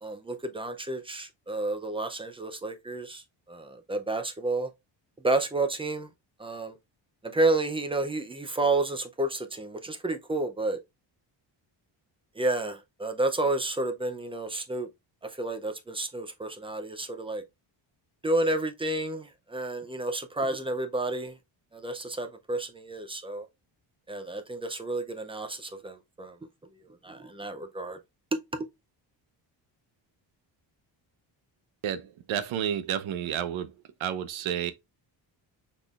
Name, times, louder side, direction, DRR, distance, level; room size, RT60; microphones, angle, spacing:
voice 1, 0.0-4.7 5.2-6.1 6.4-6.8 7.2-10.8 12.3-14.9 15.2-17.4 18.2-21.4 21.7-23.5 24.1-26.4 26.7-28.0 28.3-28.7, right 2 dB, 15° right, 0.4 m, -30 dB
voice 2, 31.8-33.7 34.0-34.7, right 9 dB, 85° right, 0.8 m, -30 dB
6.0 x 3.6 x 2.3 m
cardioid pair, 165°, 46 cm